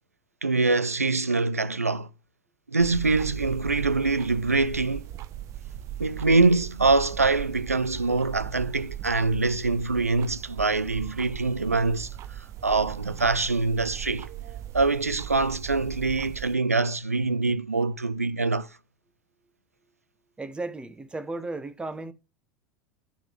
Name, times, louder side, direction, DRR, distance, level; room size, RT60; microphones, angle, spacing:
voice 1, 0.4-2.1 2.7-5.1 6.0-14.3 14.7-18.8, right 3 dB, 85° right, 0.5 m, -24 dB
sound 1, 2.8-16.5, right 12 dB, 40° right, 0.7 m, -38 dB
voice 2, 20.4-22.1, right 2 dB, 15° right, 1.1 m, -35 dB
12.5 x 6.1 x 3.3 m
figure-of-eight pair, 80°, 8 cm